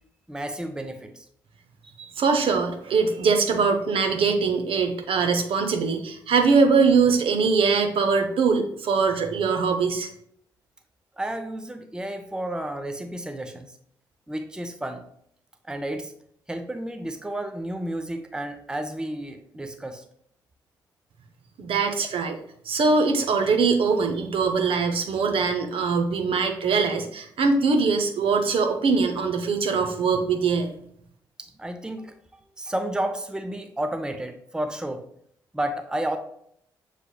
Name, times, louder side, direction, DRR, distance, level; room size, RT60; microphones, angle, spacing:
voice 1, 0.3-1.2 11.2-13.7 14.3-15.0 15.6-16.1 16.5-20.0 31.4-32.1 32.6-35.0 35.5-36.2, right 1 dB, 5° right, 6 dB, 0.6 m, -31 dB
voice 2, 2.0-10.1 21.6-22.4 22.7-30.7, right 4 dB, 55° right, 5 dB, 0.7 m, -22 dB
6.6 x 3.2 x 2.3 m, 0.68 s
hypercardioid pair, 40°, 11 cm